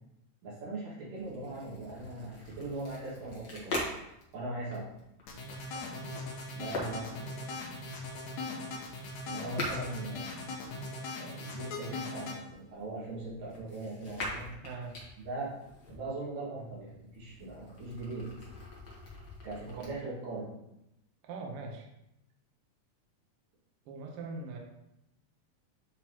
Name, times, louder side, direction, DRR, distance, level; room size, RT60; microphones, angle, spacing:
voice 1, 0.4-3.8 4.3-4.9 6.5-7.4 9.3-10.3 11.1-14.6 15.2-15.6 15.9-18.3 19.4-20.5, right 2 dB, 85° right, -6 dB, 3.5 m, -40 dB
sound 1, 1.1-11.1 11.8-16.0 16.6-19.9, left 1 dB, 50° left, 1.3 m, -43 dB
sound 2, 5.3-12.4, left 3 dB, 70° left, 2.2 m, -39 dB
voice 2, 14.6-15.0 19.6-19.9 21.2-21.9 23.8-24.6, right 3 dB, 70° right, 1 dB, 1.4 m, -41 dB
9.0 x 3.6 x 2.9 m, 0.84 s
omnidirectional pair, 3.7 m